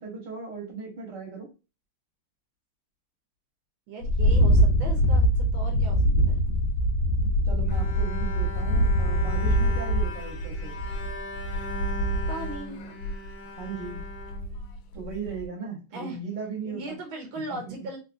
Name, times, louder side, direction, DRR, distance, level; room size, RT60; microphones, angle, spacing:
voice 1, 0.0-1.5 7.5-10.7 13.6-14.0 14.9-17.0 17.5-17.6, right 5 dB, 65° right, -2 dB, 1.6 m, -37 dB
voice 2, 3.9-6.4 12.3-12.8 15.9-16.2 16.6-18.0, right 2 dB, 85° right, 2 dB, 1.5 m, -38 dB
sound 1, 4.0-12.6 13.0-13.3 13.8-14.8 15.1-15.4, equal, 85° left, 1.3 m, -24 dB
Bowed string instrument, 7.7-15.1, left 3 dB, 65° left, 1.0 m, -39 dB
3.6 x 2.4 x 2.5 m, 0.30 s
omnidirectional pair, 2.1 m